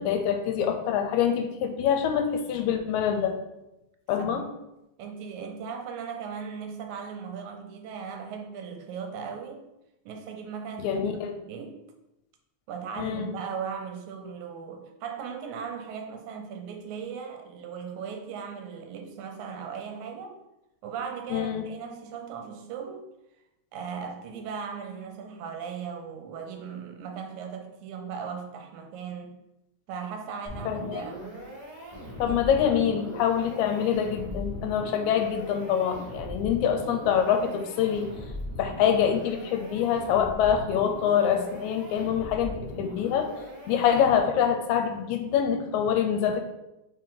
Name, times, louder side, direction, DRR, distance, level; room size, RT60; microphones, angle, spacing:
voice 1, 0.0-3.4 4.1-4.4 10.8-11.3 13.0-13.3 21.3-21.6 30.7-31.0 32.2-38.1 38.6-43.3 43.7-46.4, left 8 dB, 80° left, 6 dB, 1.9 m, -25 dB
voice 2, 5.0-9.6 10.1-11.0 11.4-11.8 12.7-20.3 20.8-23.1 23.7-29.4 29.9-31.4 32.3-32.4 32.8-33.0, right 6 dB, 80° right, 4 dB, 2.0 m, -38 dB
sound 1, 30.4-44.5, equal, 25° right, 0.7 m, -40 dB
4.3 x 3.3 x 3.7 m, 0.91 s
omnidirectional pair, 3.3 m